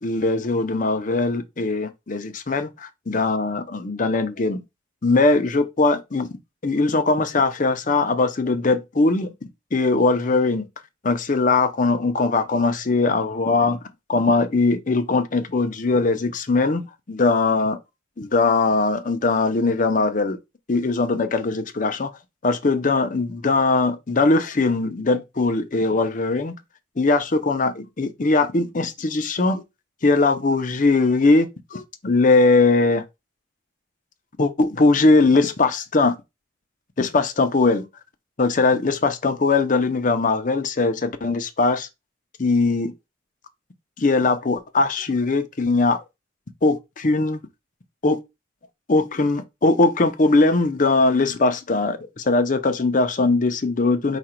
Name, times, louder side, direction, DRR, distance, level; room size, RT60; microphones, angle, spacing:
voice 1, 0.0-4.6 5.0-6.3 6.6-9.3 9.7-10.7 11.0-13.8 14.1-17.8 18.2-20.4 20.7-22.1 22.4-26.5 27.0-29.6 30.0-33.0 34.4-36.2 37.0-37.9 38.4-41.9 42.4-42.9 44.0-46.0 46.6-47.4 48.0-48.2 48.9-54.2, left 3 dB, 40° left, 0.6 m, -20 dB
4.9 x 2.4 x 4.3 m
head